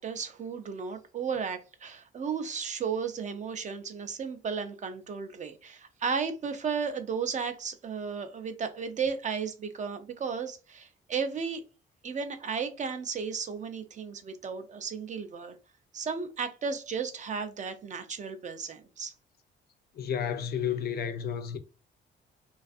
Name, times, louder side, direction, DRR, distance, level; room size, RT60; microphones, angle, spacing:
voice 1, 0.0-11.6 12.0-15.5 15.9-19.1, right 6 dB, 40° right, 0.4 m, -34 dB
voice 2, 20.0-21.6, left 8 dB, 55° left, 0.4 m, -31 dB
2.5 x 2.3 x 2.4 m
cardioid pair, 90°, 20 cm